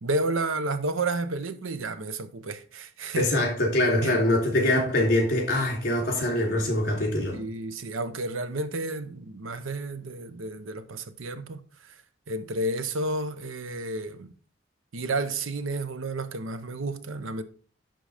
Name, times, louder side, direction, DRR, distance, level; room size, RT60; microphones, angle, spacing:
voice 1, 0.0-3.3 4.0-4.1 7.3-11.9 12.3-14.3 14.9-17.4, right 2 dB, 85° right, 0.8 m, -31 dB
voice 2, 3.2-7.4, left 1 dB, 45° left, 3.1 m, -24 dB
10.5 x 3.8 x 4.9 m
head